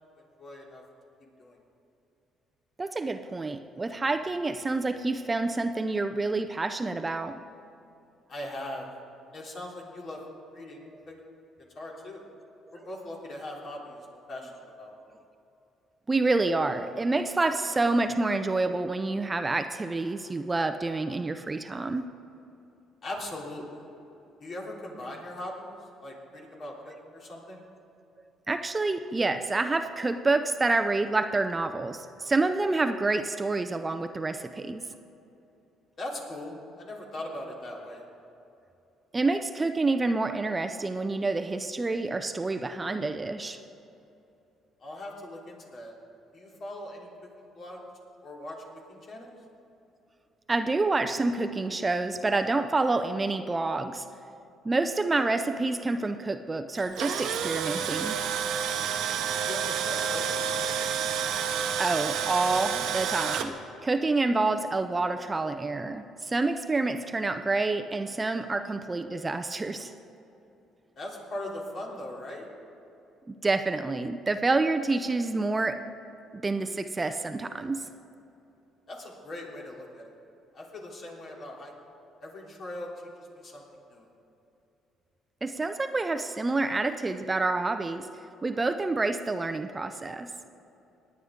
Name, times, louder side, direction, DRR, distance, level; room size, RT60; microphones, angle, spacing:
voice 1, 0.4-0.8 1.4-1.6 8.3-8.9 9.3-10.2 10.5-10.8 11.1-11.2 11.7-12.2 12.7-14.0 14.3-15.0 23.0-23.8 24.4-27.6 36.0-38.0 44.8-46.0 46.3-47.1 47.4-47.8 48.2-49.4 59.4-60.9 71.0-72.5 78.9-80.1 80.5-81.7 82.2-82.9 83.2-83.6 83.9-84.1, left 1 dB, 50° left, -2 dB, 3.2 m, -40 dB
voice 2, 2.8-7.4 16.1-22.1 28.5-34.8 39.1-43.6 50.5-54.1 54.6-58.2 61.8-69.9 73.3-75.8 76.3-77.9 85.4-88.1 88.4-90.3, right 3 dB, 25° right, 9 dB, 0.5 m, -28 dB
Tools, 56.8-63.5, right 8 dB, 80° right, 0.9 m, -29 dB
19.5 x 9.5 x 3.7 m, 2.9 s
cardioid pair, 90°, 0 cm